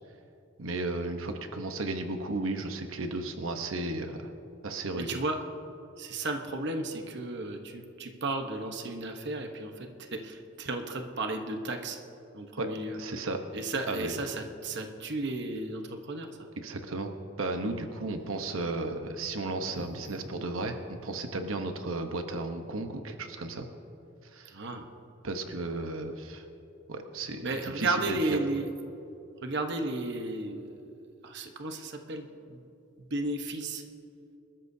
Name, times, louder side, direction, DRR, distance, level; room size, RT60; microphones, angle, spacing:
voice 1, 0.6-4.3 4.6-5.2 12.6-12.7 13.0-13.4 13.9-14.1 16.6-17.1 17.4-23.7 24.3-24.6 25.2-26.4 26.9-28.4, right 2 dB, 85° right, 5 dB, 1.0 m, -34 dB
voice 2, 4.9-5.4 6.0-12.0 12.3-13.0 13.5-16.5 19.7-20.2 24.5-24.9 27.4-28.6 29.4-30.8 31.2-32.6 33.0-33.8, right 2 dB, 60° right, 4 dB, 1.1 m, -34 dB
26.5 x 13.5 x 2.7 m, 2.8 s
head